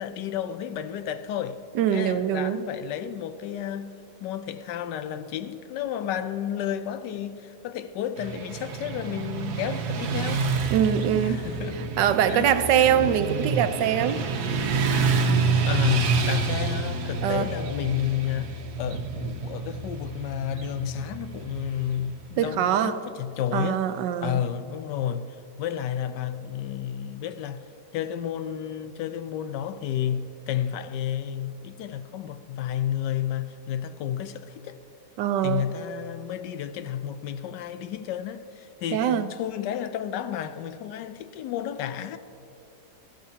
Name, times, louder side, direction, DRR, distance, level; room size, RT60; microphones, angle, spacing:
voice 1, 0.0-1.6 1.9-3.9 4.2-10.5 11.1-12.0 12.3-12.9 15.7-23.8 24.2-27.6 27.9-34.8 35.4-42.2, left 10 dB, 85° left, 1.3 m, -31 dB
voice 2, 1.7-2.6 10.7-11.4 12.0-14.2 17.2-17.5 22.4-22.9 23.5-24.3 35.2-35.7 38.9-39.3, right 9 dB, 85° right, 1.3 m, -23 dB
Motorcycle / Traffic noise roadway noise, 8.2-22.3, right 4 dB, 70° right, 1.4 m, -28 dB
20.5 x 13.0 x 2.8 m
omnidirectional pair, 1.8 m